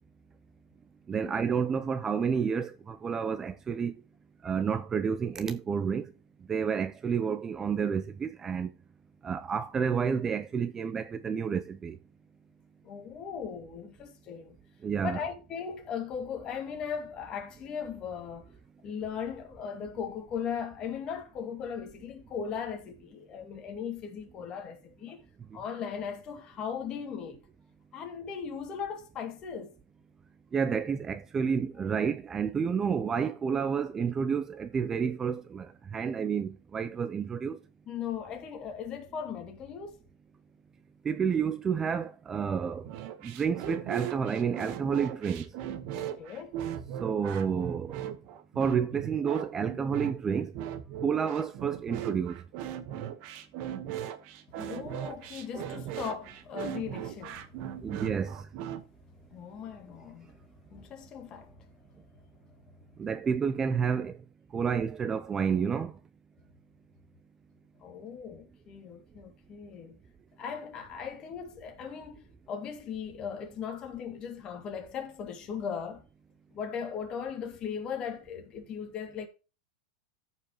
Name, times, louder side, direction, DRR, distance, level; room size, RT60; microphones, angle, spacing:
voice 1, 1.1-3.9 4.4-6.0 6.5-8.7 9.2-12.0 14.8-15.2 30.5-37.6 41.0-42.9 43.2-45.5 47.0-48.0 48.6-50.5 51.0-52.4 57.8-58.4 63.0-64.2 64.5-65.9, right 6 dB, 20° right, 0.5 m, -30 dB
voice 2, 12.8-14.6 15.0-18.5 18.8-25.2 25.5-27.4 27.9-29.7 37.9-40.0 45.9-46.5 54.5-57.5 58.1-58.3 59.3-60.4 60.7-61.7 67.8-70.0 70.4-76.0 76.5-79.3, left 7 dB, 30° left, 2.2 m, -38 dB
sound 1, 42.8-58.8, right 11 dB, 50° right, 1.2 m, -38 dB
14.0 x 5.5 x 3.0 m
supercardioid pair, 150°, 3 cm